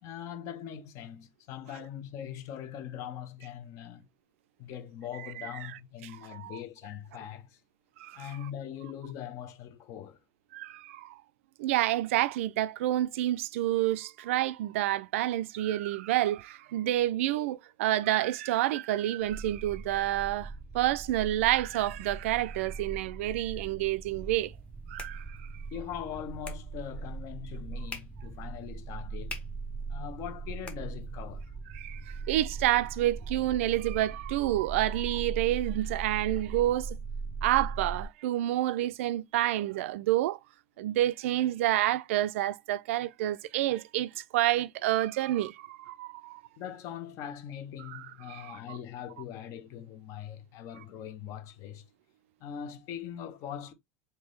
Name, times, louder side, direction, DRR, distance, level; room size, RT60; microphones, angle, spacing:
voice 1, 0.0-4.1 4.6-7.6 8.1-10.2 25.7-29.4 29.9-31.5 46.6-51.9 52.4-53.7, left 9 dB, 45° left, 0.8 m, -41 dB
voice 2, 5.2-5.5 6.3-6.6 8.0-8.3 10.5-11.2 11.6-24.5 24.9-25.4 31.7-37.0 37.4-40.4 40.8-46.4 47.9-48.6, right 14 dB, 80° right, 0.4 m, -29 dB
sound 1, 19.2-38.1, right 4 dB, 5° right, 0.3 m, -40 dB
sound 2, 24.4-31.5, left 3 dB, 15° left, 0.9 m, -50 dB
3.6 x 2.8 x 3.1 m
supercardioid pair, 140°, 7 cm